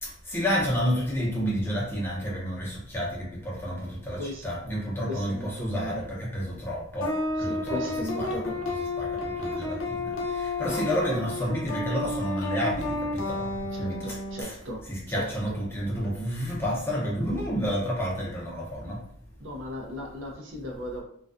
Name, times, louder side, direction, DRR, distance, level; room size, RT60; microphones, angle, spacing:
voice 1, 0.0-7.8 8.2-8.6 9.0-14.6 14.9-19.0, equal, 10° left, -5 dB, 0.6 m, -30 dB
voice 2, 4.1-4.5 5.0-6.0 7.4-8.6 10.6-10.9 13.7-15.6 19.4-21.0, left 1 dB, 70° right, -1 dB, 0.6 m, -37 dB
sound 1, 7.0-14.4, left 2 dB, 75° left, 0.5 m, -31 dB
2.3 x 2.2 x 2.5 m, 0.67 s
head